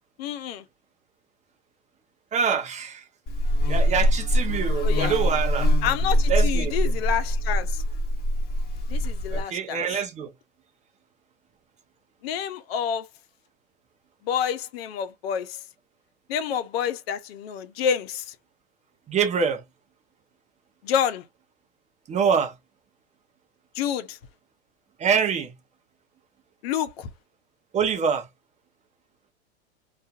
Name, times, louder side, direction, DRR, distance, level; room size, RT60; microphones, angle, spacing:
voice 1, 0.2-0.6 4.8-5.1 5.8-7.8 8.9-10.0 12.2-13.1 14.2-15.6 16.3-18.3 20.8-21.2 23.8-24.2 26.6-27.1, left 8 dB, 60° left, 0.7 m, -28 dB
voice 2, 2.3-3.0 3.7-5.7 6.3-6.8 9.3-10.3 19.1-19.6 22.1-22.5 25.0-25.5 27.7-28.2, right 6 dB, 20° right, 0.6 m, -25 dB
Buzz, 3.3-9.4, equal, 30° left, 1.0 m, -23 dB
2.5 x 2.4 x 2.4 m
hypercardioid pair, 105°, 34 cm